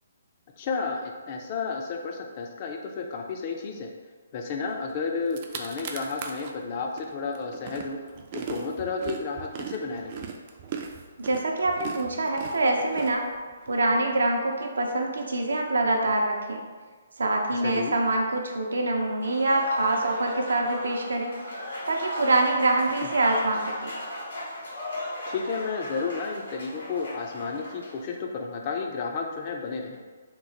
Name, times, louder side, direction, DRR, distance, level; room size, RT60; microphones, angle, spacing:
voice 1, 0.6-3.9 4.3-8.0 8.3-10.3 17.6-18.0 25.3-30.0, left 4 dB, 35° left, 2 dB, 0.4 m, -32 dB
sound 1, 4.9-5.0 5.2-6.5 7.0-13.7, right 6 dB, 35° right, 0.3 m, -38 dB
voice 2, 11.2-13.3 13.7-16.6 17.2-21.3 21.9-23.9, right 2 dB, 90° right, 1 dB, 0.5 m, -25 dB
Applause / Crowd, 19.2-28.0, left 1 dB, 80° left, 1.4 m, -37 dB
3.0 x 2.0 x 3.8 m, 1.5 s
hypercardioid pair, 155°, 0 cm